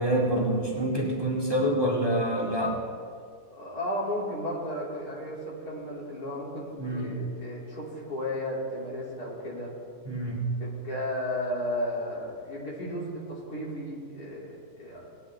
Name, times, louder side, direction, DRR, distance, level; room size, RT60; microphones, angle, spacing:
voice 1, 0.0-2.8 6.8-7.2 10.1-10.5, right 1 dB, 15° right, -3 dB, 1.9 m, -27 dB
voice 2, 3.5-9.7 10.6-15.0, left 1 dB, 75° left, -5 dB, 3.4 m, -34 dB
19.5 x 9.6 x 3.4 m, 2.2 s
omnidirectional pair, 1.6 m